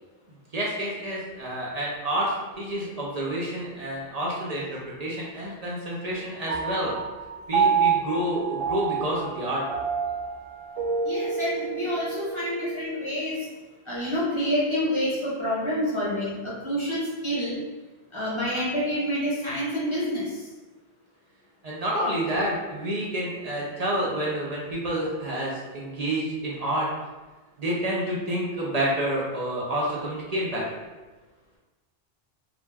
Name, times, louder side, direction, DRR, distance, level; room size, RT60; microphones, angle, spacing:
voice 1, 0.5-7.0 7.5-9.6 21.6-26.9 27.6-30.8, right 1 dB, 50° right, -5 dB, 0.5 m, -29 dB
Piano, 6.5-13.2, right 6 dB, 65° right, 0.9 m, -28 dB
voice 2, 11.0-13.5 13.8-17.6 18.1-20.5, equal, 30° left, -8 dB, 0.8 m, -28 dB
2.4 x 2.1 x 3.3 m, 1.2 s
omnidirectional pair, 1.0 m